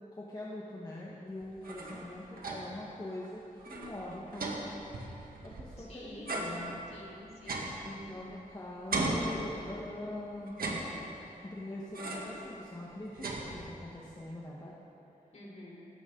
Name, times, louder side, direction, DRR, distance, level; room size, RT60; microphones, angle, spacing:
voice 1, 0.1-4.6 5.4-6.8 7.8-10.6 11.4-14.7, left 1 dB, 25° left, -5 dB, 1.5 m, -43 dB
sound 1, 1.4-2.9 3.2-3.3 3.6-5.8 6.3-8.5 8.9-10.0 10.5-11.4 11.9-12.5 12.8-14.0, right 2 dB, 85° right, 1.9 m, -37 dB
voice 2, 5.8-6.4 6.9-8.3 15.3-15.9, left 1 dB, 50° left, -3 dB, 4.0 m, -50 dB
19.0 x 16.0 x 3.9 m, 3.0 s
wide cardioid pair, 130°, 15 cm